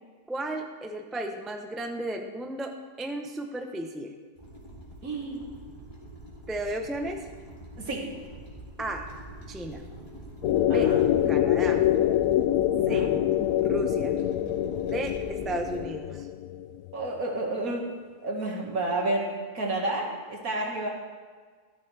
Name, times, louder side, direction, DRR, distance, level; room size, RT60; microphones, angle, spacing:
voice 1, 0.3-4.1 6.5-7.3 8.8-9.1 9.5-9.8 10.7-10.9 11.3-11.8 12.9-13.1 13.6-14.2 14.8-16.3, right 1 dB, ahead, 3 dB, 0.4 m, -34 dB
sound 1, 4.4-15.8, right 1 dB, 20° left, 2.9 m, -45 dB
voice 2, 5.0-5.4 7.8-8.0 10.7-11.0 12.7-13.1 16.9-17.8 18.2-20.9, right 2 dB, 60° right, -1 dB, 2.3 m, -30 dB
sound 2, 10.4-16.9, left 11 dB, 70° left, 1.0 m, -25 dB
14.0 x 13.5 x 3.4 m, 1.5 s
omnidirectional pair, 1.7 m